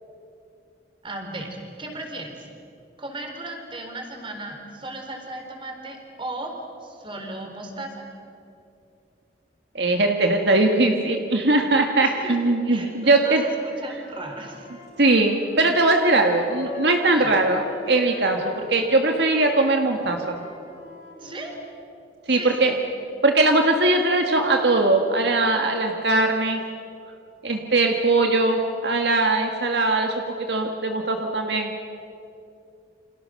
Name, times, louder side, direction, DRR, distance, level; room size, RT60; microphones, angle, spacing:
voice 1, 1.0-2.5 3.0-6.5 6.8-8.1 12.0-12.4 12.7-14.7 17.1-17.3 21.2-21.5 22.3-22.7, right 2 dB, 30° right, 3 dB, 4.2 m, -36 dB
voice 2, 9.7-13.5 15.0-20.4 22.3-22.7 23.2-26.6 27.4-31.7, right 2 dB, 70° right, 3 dB, 1.8 m, -20 dB
Wind instrument woodwind instrument, 13.3-21.7, left 2 dB, 75° left, 7.6 m, -41 dB
29.5 x 27.0 x 6.5 m, 2.6 s
head